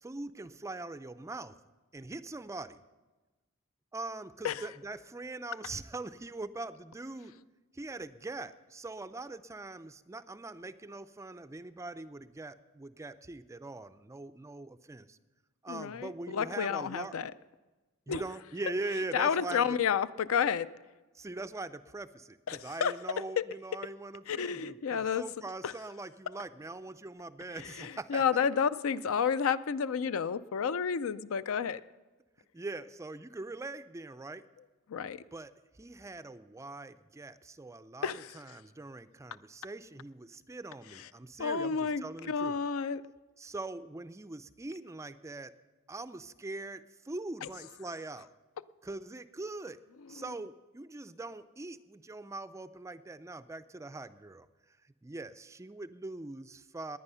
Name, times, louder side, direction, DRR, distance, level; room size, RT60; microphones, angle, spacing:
voice 1, 0.0-1.6 1.9-2.8 3.9-7.3 7.7-15.2 15.6-17.1 18.1-19.7 21.1-28.2 32.5-34.4 35.3-35.5 35.8-42.6 43.4-45.5 45.9-48.3 48.8-49.8 50.1-54.5 55.0-57.0, right 2 dB, 15° right, 13 dB, 0.4 m, -42 dB
voice 2, 15.7-17.3 18.1-18.2 19.1-20.7 22.5-22.9 23.4-23.5 24.3-25.2 25.6-25.7 27.6-31.8 34.9-35.2 38.0-38.4 41.4-43.0 47.4-47.5, left 7 dB, 65° left, 15 dB, 0.4 m, -31 dB
19.5 x 9.7 x 5.6 m, 1.2 s
head